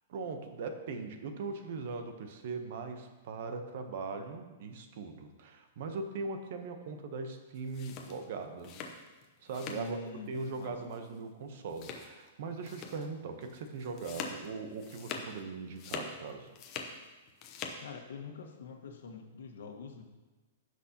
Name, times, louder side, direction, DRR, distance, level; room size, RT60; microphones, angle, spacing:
voice 1, 0.1-8.7 9.4-10.0 10.3-16.6, right 4 dB, 45° right, 6 dB, 0.9 m, -40 dB
sound 1, 7.6-10.0 10.3-10.7 10.9-11.1 11.7-12.3 12.6-13.1 13.4-15.4 15.7-17.0 17.3-17.8, left 5 dB, 25° left, 0.7 m, -43 dB
voice 2, 9.7-10.8 17.8-20.0, left 4 dB, 85° left, 3 dB, 1.4 m, -45 dB
15.0 x 6.0 x 2.9 m, 1.2 s
hypercardioid pair, 175°, 0 cm